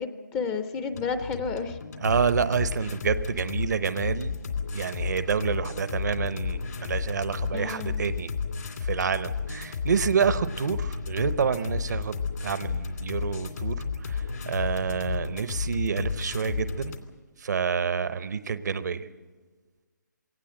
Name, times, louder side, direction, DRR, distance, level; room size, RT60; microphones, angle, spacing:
voice 1, 0.0-1.8 7.5-8.0, left 5 dB, 15° left, 10 dB, 0.6 m, -31 dB
sound 1, 0.9-17.0, left 5 dB, 65° left, 2.6 m, -32 dB
voice 2, 2.0-4.4 4.7-8.3 8.8-17.0 17.4-19.1, right 6 dB, 65° right, 13 dB, 0.9 m, -28 dB
22.5 x 18.0 x 7.8 m, 1.4 s
hypercardioid pair, 155°, 10 cm